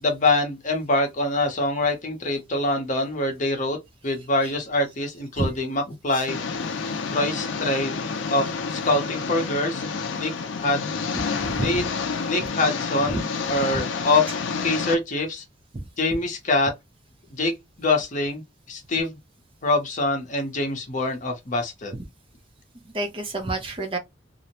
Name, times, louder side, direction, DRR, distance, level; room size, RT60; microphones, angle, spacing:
voice 1, 0.0-3.8 4.0-6.4 7.1-9.8 10.2-10.3 10.6-10.9 11.6-11.8 12.3-13.2 13.5-14.3 14.6-15.4 16.0-16.7 17.3-17.5 17.8-18.4 18.7-19.1 19.6-21.9, left 2 dB, 40° left, 0.7 m, -24 dB
Engine, 6.3-14.9, left 5 dB, 75° left, 0.4 m, -29 dB
voice 2, 11.4-11.8 13.1-13.2 13.7-13.8 15.7-15.9 22.9-24.0, right 2 dB, 30° right, 0.5 m, -28 dB
2.5 x 2.1 x 2.8 m
head